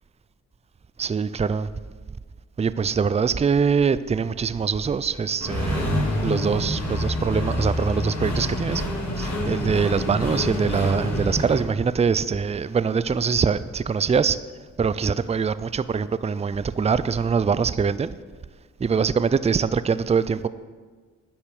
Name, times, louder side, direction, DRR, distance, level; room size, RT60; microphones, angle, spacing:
voice 1, 1.0-1.7 2.6-5.9 6.2-8.8 9.2-14.4 14.8-18.1 18.8-20.5, right 6 dB, 20° right, 0.4 m, -23 dB
Accelerating revving vroom, 5.4-11.6, left 1 dB, 55° left, 3.0 m, -27 dB
10.0 x 5.8 x 6.5 m
cardioid pair, 55°, 32 cm